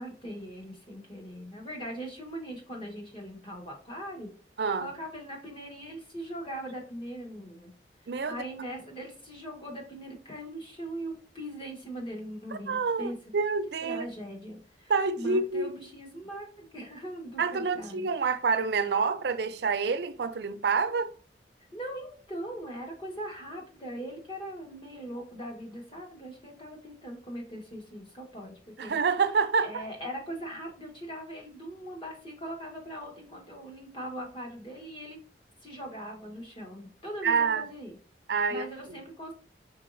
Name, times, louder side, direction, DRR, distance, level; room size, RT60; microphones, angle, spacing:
voice 1, 0.0-4.3 4.8-7.7 8.0-13.2 13.8-18.1 21.7-29.0 29.6-35.2 35.6-38.0 38.5-39.3, equal, 30° left, 1.3 m, -40 dB
voice 2, 4.6-4.9 8.1-8.4 12.5-14.1 14.9-15.7 17.4-21.1 28.8-29.7 37.2-37.6 38.3-38.7, right 5 dB, 70° right, 0.5 m, -27 dB
4.7 x 3.9 x 2.5 m
head